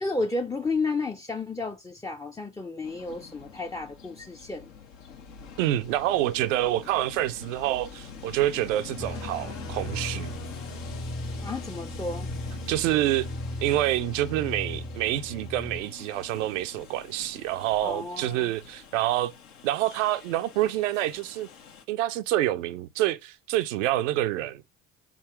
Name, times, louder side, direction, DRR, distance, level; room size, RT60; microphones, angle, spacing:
voice 1, 0.0-4.7 11.4-12.3 17.8-18.5, left 3 dB, 10° left, 0.4 m, -32 dB
Train, 2.8-21.8, left 6 dB, 75° left, 0.9 m, -45 dB
voice 2, 5.6-10.3 12.7-13.3 13.6-19.3 19.6-21.5 21.9-24.6, right 14 dB, 75° right, 0.5 m, -27 dB
sound 1, 9.0-15.8, left 1 dB, 40° left, 1.0 m, -37 dB
4.2 x 3.6 x 2.9 m
figure-of-eight pair, 50°, 38 cm